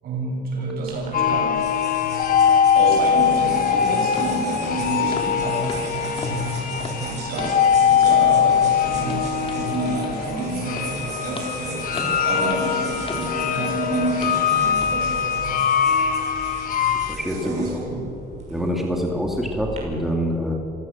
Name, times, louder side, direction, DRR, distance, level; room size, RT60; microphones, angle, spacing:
voice 1, 0.0-1.6 2.7-11.9 12.2-15.7 17.3-18.1, right 3 dB, 60° right, -1 dB, 7.2 m, -29 dB
sound 1, 0.9-19.8, right 4 dB, 45° right, 6.3 m, -38 dB
sound 2, 1.1-17.2, left 8 dB, 55° left, 1.9 m, -22 dB
sound 3, 4.1-4.4 4.6-4.8 5.1-5.4 5.6-7.7 8.0-8.2 8.6-13.9 14.2-14.4 14.8-15.0 15.4-15.6, left 2 dB, 30° left, 3.3 m, -37 dB
voice 2, 17.1-17.8 18.5-20.5, equal, ahead, 0 dB, 2.7 m, -25 dB
26.5 x 16.0 x 7.6 m, 2.9 s
cardioid pair, 110°, 17 cm